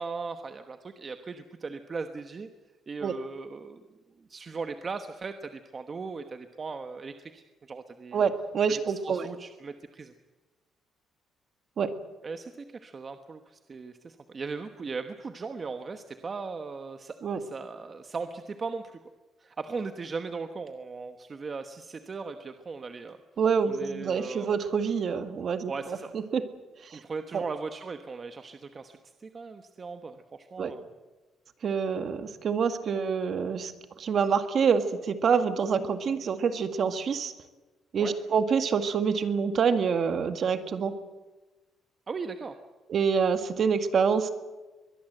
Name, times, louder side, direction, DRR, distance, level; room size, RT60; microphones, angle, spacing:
voice 1, 0.0-2.5 2.9-3.8 4.2-8.2 8.9-10.1 12.2-19.0 19.4-23.2 23.6-24.5 25.7-26.1 26.9-30.9 38.0-38.2 42.1-42.6, right 4 dB, 30° right, 8 dB, 1.1 m, -38 dB
voice 2, 8.1-9.3 11.8-11.9 17.2-17.4 23.4-26.5 26.9-27.0 27.3-27.4 30.6-30.7 31.6-33.7 34.0-37.3 37.9-41.0 42.9-44.3, right 6 dB, 45° right, 9 dB, 1.8 m, -26 dB
23.0 x 21.5 x 7.9 m, 1.2 s
cardioid pair, 150°, 0 cm